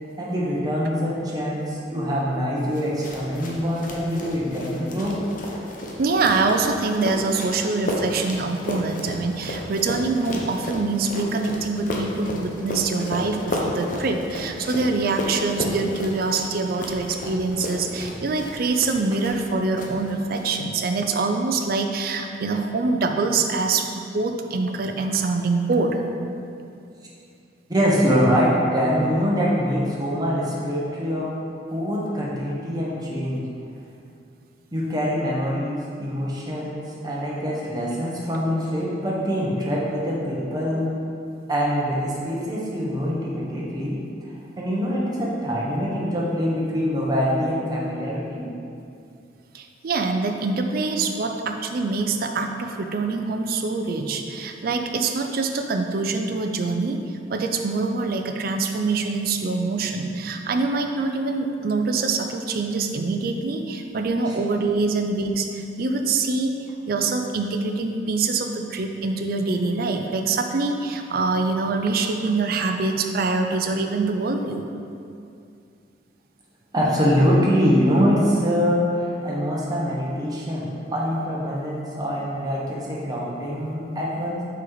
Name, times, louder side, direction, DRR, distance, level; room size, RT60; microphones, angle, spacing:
voice 1, 0.2-5.2 27.7-31.3 31.7-33.4 34.7-40.9 41.5-44.0 44.6-48.5 64.3-64.4 76.7-84.4, equal, 20° right, -5 dB, 1.0 m, -24 dB
sound 1, 2.7-19.5 19.8-20.4, left 1 dB, 45° left, 0.8 m, -32 dB
voice 2, 6.0-26.0 49.5-57.0 57.3-66.5 66.9-74.7, right 3 dB, 55° right, 5 dB, 0.4 m, -24 dB
5.8 x 4.5 x 3.9 m, 2.5 s
head